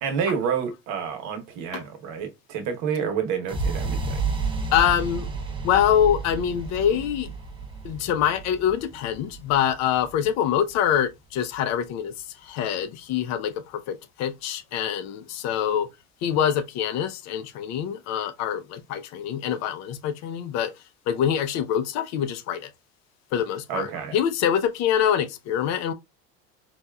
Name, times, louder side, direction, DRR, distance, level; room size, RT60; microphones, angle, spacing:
voice 1, 0.0-4.2 23.7-24.2, right 7 dB, 65° right, 1.0 m, -29 dB
sound 1, 3.5-11.4, right 4 dB, 15° right, 0.6 m, -32 dB
voice 2, 4.7-5.3 5.6-7.3 7.8-12.1 12.4-15.9 16.2-20.7 21.1-22.7 23.3-25.9, left 9 dB, 60° left, 0.5 m, -25 dB
4.1 x 2.3 x 2.2 m
cardioid pair, 125°, 31 cm